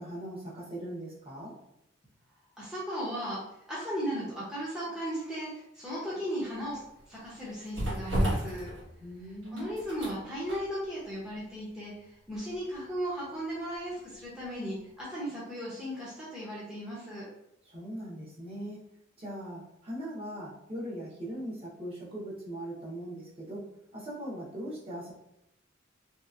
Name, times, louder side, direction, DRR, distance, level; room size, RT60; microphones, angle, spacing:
voice 1, 0.0-1.5 9.0-9.8 17.6-18.8 19.2-23.6 23.9-25.1, right 1 dB, 30° right, -6 dB, 0.9 m, -40 dB
voice 2, 2.6-3.4 3.7-8.7 9.5-11.9 12.3-17.3, equal, 5° right, -8 dB, 0.7 m, -36 dB
sound 1, 6.5-14.5 14.8-14.9, right 1 dB, 65° right, 1.4 m, -36 dB
3.2 x 2.9 x 2.4 m, 0.83 s
head